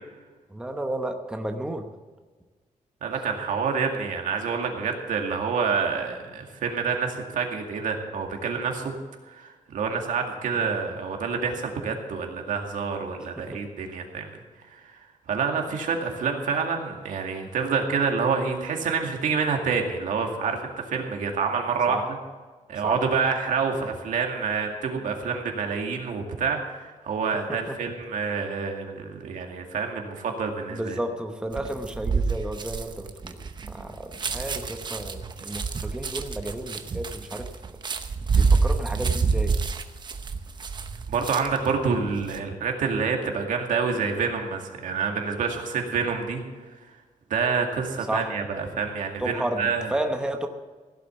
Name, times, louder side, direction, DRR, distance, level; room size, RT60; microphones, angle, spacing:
voice 1, 0.5-1.8 10.5-10.8 13.5-13.6 21.9-22.1 22.8-23.0 27.5-27.7 30.7-33.4 33.7-37.5 38.4-39.5 48.1-48.3 49.2-50.5, right 1 dB, 5° right, 5 dB, 0.9 m, -32 dB
voice 2, 3.0-8.9 9.3-14.3 14.7-15.0 15.3-22.0 22.7-31.0 41.1-46.4 47.3-49.9, right 5 dB, 85° right, 3 dB, 2.2 m, -27 dB
sound 1, 31.5-41.7 42.1-42.4, right 4 dB, 35° right, 0.8 m, -27 dB
16.0 x 8.2 x 7.0 m, 1.4 s
wide cardioid pair, 155°, 13 cm